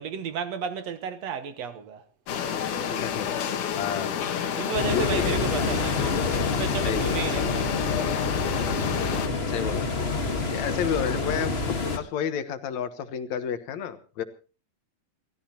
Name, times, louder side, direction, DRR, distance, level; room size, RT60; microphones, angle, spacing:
voice 1, 0.0-2.0 4.6-7.7 10.1-10.5, right 6 dB, 65° right, 2.2 m, -33 dB
sound 1, 2.3-9.3, left 8 dB, 85° left, 3.1 m, -29 dB
voice 2, 2.9-4.1 4.9-5.4 6.8-7.7 9.5-9.9 10.5-14.2, left 8 dB, 70° left, 2.4 m, -31 dB
sound 2, 4.7-12.0, left 3 dB, 40° left, 0.8 m, -28 dB
28.5 x 14.0 x 2.9 m
omnidirectional pair, 3.5 m